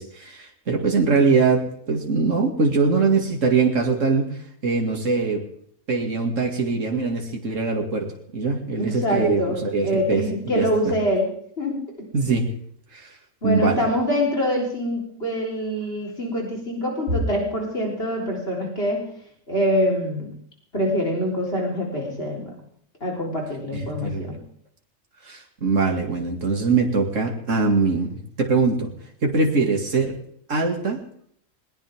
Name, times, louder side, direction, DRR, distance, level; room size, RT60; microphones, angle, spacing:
voice 1, 0.0-5.4 5.9-10.9 12.1-12.5 12.9-13.1 13.4-13.9 23.7-24.3 25.3-28.9 29.2-30.1 30.5-31.0, right 4 dB, 75° right, 2 dB, 2.7 m, -22 dB
voice 2, 8.8-9.6 9.8-11.3 11.6-11.8 13.4-19.0 19.5-20.3 20.7-22.5 23.0-24.4, equal, 50° left, -1 dB, 4.2 m, -25 dB
21.0 x 19.0 x 3.7 m, 0.63 s
omnidirectional pair, 1.3 m